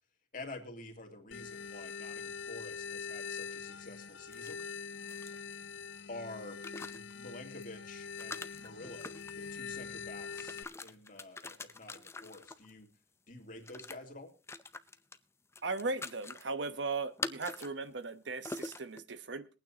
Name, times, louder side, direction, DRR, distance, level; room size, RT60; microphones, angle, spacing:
voice 1, 0.3-4.6 6.1-12.9 13.3-14.3, left 2 dB, 45° left, 2 dB, 2.4 m, -49 dB
sound 1, 1.3-10.6, left 6 dB, 75° left, 0.9 m, -43 dB
sound 2, 4.3-5.8 6.4-7.1 7.6-7.7 8.1-9.5 10.1-12.7 13.7-14.0 14.5-15.2 15.5-16.5 17.2-17.7 18.0-18.1 18.4-19.0, left 3 dB, 15° left, 0.5 m, -44 dB
voice 2, 15.6-19.5, right 3 dB, 75° right, 12 dB, 1.0 m, -37 dB
22.0 x 9.1 x 2.9 m, 0.33 s
head